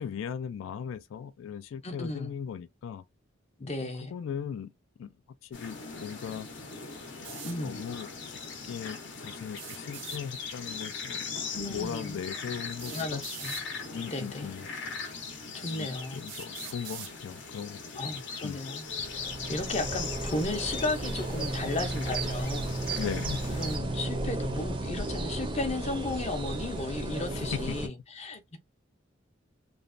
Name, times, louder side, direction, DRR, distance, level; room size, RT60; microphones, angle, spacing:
voice 1, 0.0-3.0 3.8-4.7 5.0-5.1 5.4-6.5 7.2-8.4 8.7-13.2 13.9-14.7 15.7-17.8 18.4-18.6 23.0-23.5 27.3-27.8, left 7 dB, 85° left, 0.3 m, -38 dB
voice 2, 1.8-2.3 3.6-4.1 7.4-7.8 11.5-12.2 12.9-13.6 14.1-14.5 15.5-16.2 18.0-18.8 19.1-23.0 23.5-28.6, left 2 dB, 35° left, 0.6 m, -35 dB
sound 1, 5.5-23.8, left 5 dB, 65° left, 0.8 m, -40 dB
sound 2, 7.2-7.6 9.5-10.2 11.7-11.8 12.8-13.7 14.7-14.8 15.4-15.5 16.3-17.1, right 10 dB, 70° right, 0.6 m, -43 dB
sound 3, 18.9-27.9, right 2 dB, 25° right, 0.4 m, -34 dB
3.1 x 2.0 x 2.5 m
head